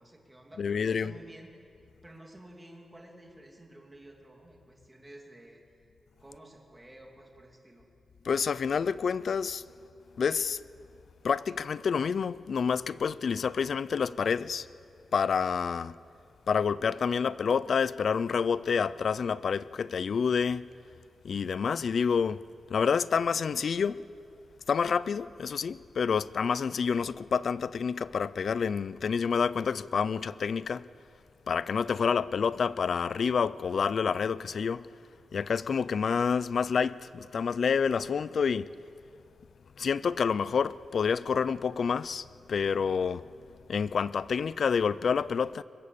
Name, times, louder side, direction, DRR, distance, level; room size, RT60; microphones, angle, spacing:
voice 1, 0.0-1.5 2.0-5.6 6.2-7.9, right 1 dB, 10° right, 2.8 m, -52 dB
voice 2, 0.6-1.1 8.2-9.6 10.2-10.6 11.2-14.7 15.1-16.0 16.5-20.6 21.2-22.4 22.7-24.0 24.7-30.9 31.5-34.9 35.3-38.7 39.8-43.3 43.7-45.6, left 6 dB, 50° left, 0.5 m, -28 dB
23.0 x 22.0 x 6.9 m
wide cardioid pair, 175°, 0 cm